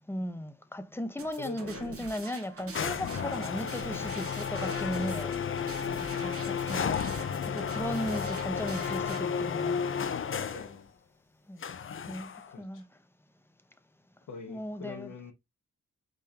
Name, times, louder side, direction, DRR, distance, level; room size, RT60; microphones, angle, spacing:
voice 1, 0.1-5.3 6.2-7.0 7.5-9.8 11.5-11.6 12.1-12.3 12.6-12.8 14.5-15.1, equal, 10° left, 0.7 m, -36 dB
sound 1, 1.2-9.2, right 4 dB, 50° right, 1.2 m, -45 dB
voice 2, 1.4-2.0 4.6-5.5 5.8-6.3 10.5-10.9 12.5-12.9 14.3-15.3, left 5 dB, 80° left, 1.0 m, -45 dB
sound 2, 2.7-10.8 11.6-12.5, left 7 dB, 45° left, 0.6 m, -33 dB
4.9 x 3.8 x 2.8 m
cardioid pair, 90°, 30 cm